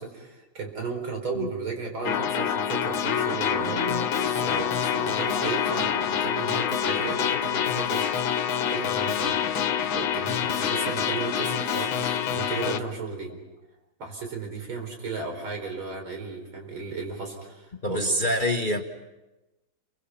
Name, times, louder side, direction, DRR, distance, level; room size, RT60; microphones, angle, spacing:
voice 1, 0.0-4.0 4.4-8.2 8.6-9.4 10.0-13.3 14.0-18.1, right 4 dB, 85° right, 3 dB, 5.2 m, -34 dB
sound 1, 2.0-12.8, left 8 dB, 80° left, 1.9 m, -26 dB
sound 2, 3.3-11.7 12.0-12.4, right 2 dB, 45° right, 2.0 m, -43 dB
voice 2, 17.8-18.8, equal, 30° left, 4 dB, 1.1 m, -25 dB
30.0 x 24.0 x 5.8 m, 1.1 s
omnidirectional pair, 2.2 m